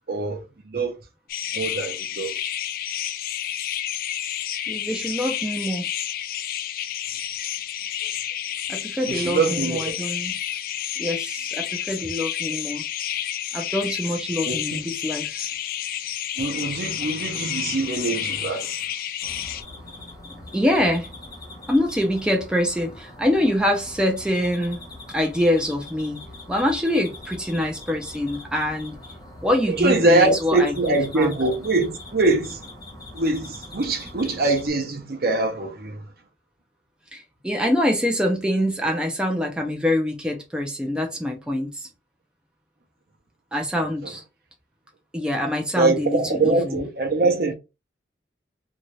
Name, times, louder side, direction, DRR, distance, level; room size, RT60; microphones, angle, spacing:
voice 1, 0.1-1.0 1.5-2.4 9.1-10.0 14.5-14.8 16.4-18.7 29.7-32.7 33.1-36.0 45.8-47.5, right 2 dB, 55° right, 0.7 m, -23 dB
sound 1, 1.3-19.6, left 10 dB, 55° left, 0.4 m, -30 dB
voice 2, 4.7-5.9 8.7-10.4 11.0-12.8 13.5-15.5 20.5-21.1 21.7-24.8 25.1-29.0 29.4-31.3 37.1-41.8 43.5-44.2 45.1-46.8, left 1 dB, 5° right, 0.5 m, -25 dB
sound 2, 19.2-34.7, left 2 dB, 20° left, 0.8 m, -42 dB
2.7 x 2.4 x 3.0 m
head